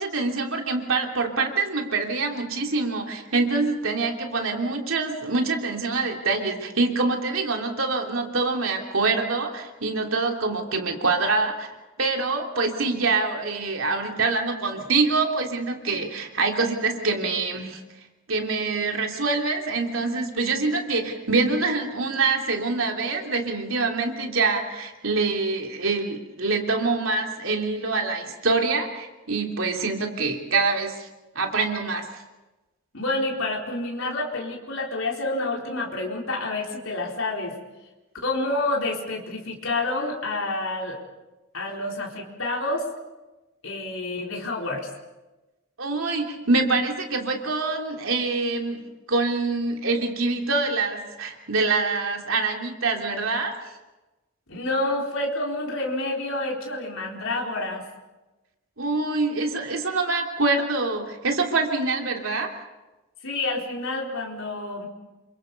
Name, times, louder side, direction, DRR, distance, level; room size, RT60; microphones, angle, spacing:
voice 1, 0.0-17.8 18.3-31.1 31.3-32.1 45.8-48.8 49.1-53.5 58.8-62.5, right 3 dB, 65° right, 2 dB, 3.2 m, -25 dB
voice 2, 32.9-37.6 38.2-41.0 41.5-42.9 43.6-44.9 54.5-57.8 63.2-64.9, left 2 dB, 65° left, -1 dB, 4.2 m, -28 dB
28.0 x 24.5 x 5.4 m, 1.1 s
head